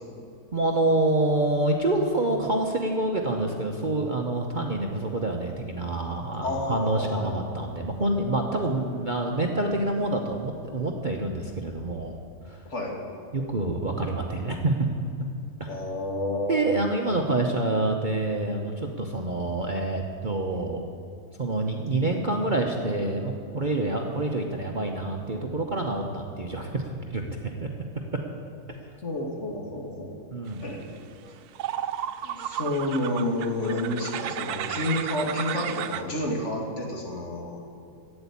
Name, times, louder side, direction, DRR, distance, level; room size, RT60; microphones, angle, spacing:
voice 1, 0.5-12.2 12.4-12.6 13.3-14.9 15.6-15.7 16.5-20.8 21.4-27.2 27.6-27.7 28.7-28.8 30.3-30.7, right 2 dB, 40° right, 1 dB, 0.9 m, -27 dB
voice 2, 6.4-7.4 12.7-12.9 15.7-16.7 29.0-30.1 30.6-30.8 32.2-37.7, left 1 dB, 50° left, -1 dB, 2.6 m, -30 dB
sound 1, 31.0-31.1 31.5-36.0, right 11 dB, 80° right, 1.1 m, -33 dB
12.5 x 9.0 x 8.4 m, 2.4 s
omnidirectional pair, 1.6 m